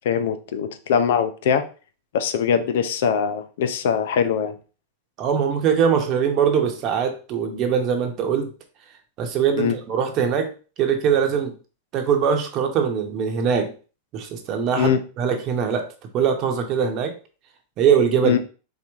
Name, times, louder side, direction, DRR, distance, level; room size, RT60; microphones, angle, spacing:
voice 1, 0.0-1.6 2.1-4.6 9.6-9.8 14.8-15.0 18.2-18.4, left 7 dB, 70° left, 10 dB, 0.6 m, -22 dB
voice 2, 5.2-8.5 9.2-10.5 10.8-11.6 11.9-13.7 14.1-15.9 16.1-17.1 17.8-18.4, right 7 dB, 40° right, 5 dB, 0.9 m, -22 dB
4.1 x 3.0 x 3.5 m, 0.36 s
hypercardioid pair, 120°, 0 cm